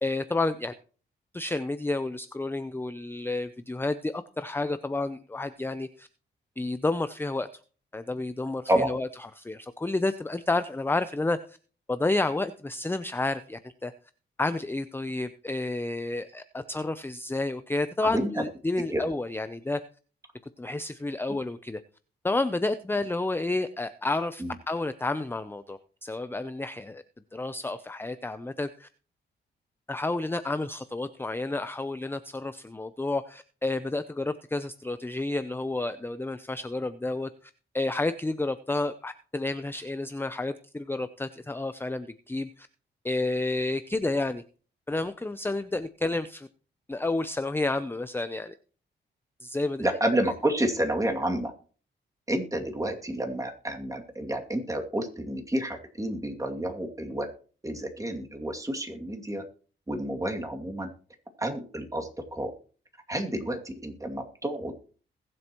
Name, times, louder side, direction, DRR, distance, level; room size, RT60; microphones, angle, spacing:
voice 1, 0.0-0.7 1.3-6.1 6.6-7.5 7.9-11.6 11.9-13.9 14.4-19.8 20.6-21.8 22.2-27.0 27.3-28.9 29.9-42.7 43.0-44.4 44.9-46.5 46.9-48.5 49.4-49.9 50.2-50.3, left 2 dB, 10° left, 11 dB, 0.6 m, -30 dB
voice 2, 49.8-51.5 52.3-57.3 57.6-59.4 59.9-60.9 61.4-62.5 63.1-64.7, right 1 dB, 15° right, 2 dB, 2.4 m, -29 dB
21.0 x 7.8 x 3.0 m, 0.40 s
cardioid pair, 80°, 20 cm